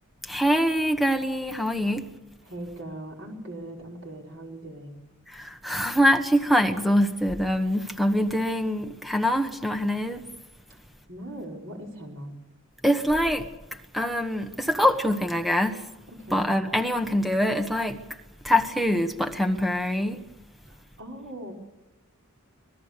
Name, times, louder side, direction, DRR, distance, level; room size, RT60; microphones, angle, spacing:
voice 1, 0.2-2.1 5.3-10.2 12.8-13.5 13.9-15.8 16.3-18.0 18.4-20.2, equal, ahead, 1.4 m, -24 dB
voice 2, 2.4-5.0 11.1-12.3 16.1-16.5 20.7-21.5, right 1 dB, 55° right, 5.1 m, -39 dB
26.5 x 19.5 x 6.8 m
head